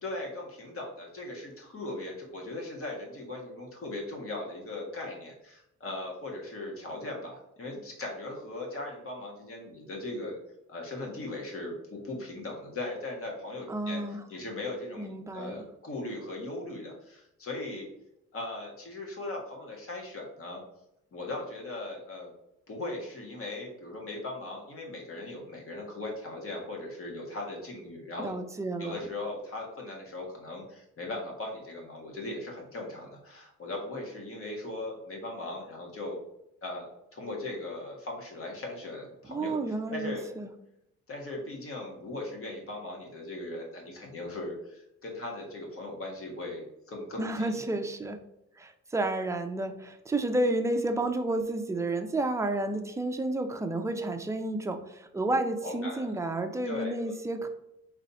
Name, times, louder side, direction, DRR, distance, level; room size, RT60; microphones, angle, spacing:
voice 1, 0.0-10.4 10.7-14.0 14.3-17.9 18.3-20.6 21.1-22.3 22.7-28.4 28.8-36.2 36.6-40.3 41.1-47.8 55.6-56.1 56.6-57.1, left 2 dB, 45° left, 0 dB, 1.5 m, -39 dB
voice 2, 13.7-14.2 15.0-15.6 28.2-29.0 39.3-40.5 47.2-48.2 48.6-57.5, right 2 dB, 10° right, 6 dB, 0.5 m, -31 dB
4.1 x 3.2 x 4.1 m, 0.85 s
cardioid pair, 90°, 30 cm